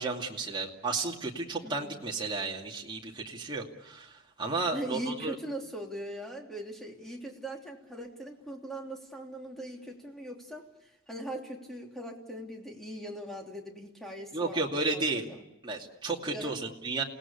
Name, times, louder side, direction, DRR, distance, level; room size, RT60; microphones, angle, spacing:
voice 1, 0.0-5.4 14.3-15.3 15.6-17.0, right 3 dB, 25° right, -1 dB, 2.5 m, -33 dB
voice 2, 1.6-2.0 4.7-10.6 11.1-15.0 16.3-16.6, right 1 dB, ahead, 0 dB, 3.2 m, -40 dB
29.0 x 18.0 x 8.5 m, 0.90 s
head